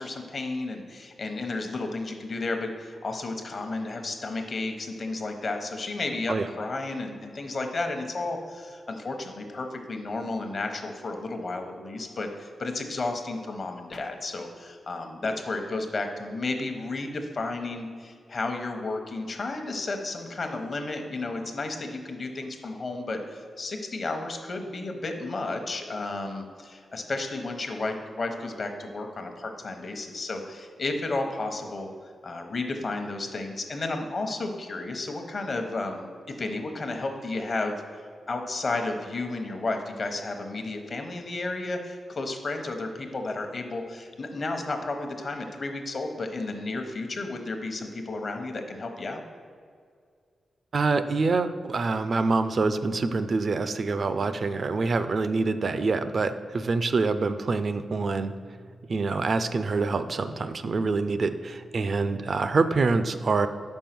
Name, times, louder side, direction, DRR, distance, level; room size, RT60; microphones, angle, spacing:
voice 1, 0.0-31.9 32.2-37.8 38.3-49.2, left 2 dB, 50° left, 5 dB, 0.9 m, -32 dB
voice 2, 50.7-58.3 58.9-63.5, right 3 dB, 55° right, 11 dB, 0.4 m, -26 dB
5.4 x 4.8 x 5.9 m, 2.1 s
cardioid pair, 85°, 0 cm